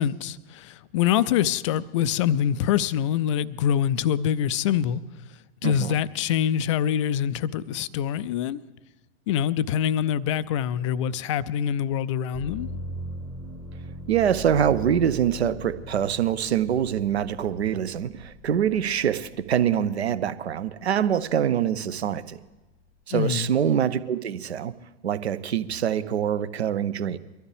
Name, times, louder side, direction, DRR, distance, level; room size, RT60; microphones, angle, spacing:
voice 1, 0.0-5.0 5.6-8.6 9.3-12.7 23.1-23.5, left 9 dB, 30° left, 0.4 m, -25 dB
voice 2, 5.6-6.0 14.1-22.4 23.1-24.7 25.0-27.2, right 9 dB, 65° right, 0.8 m, -25 dB
sound 1, 12.3-20.2 20.6-21.4, left 1 dB, 5° right, 0.9 m, -40 dB
23.0 x 13.0 x 3.3 m
figure-of-eight pair, 100°, 34 cm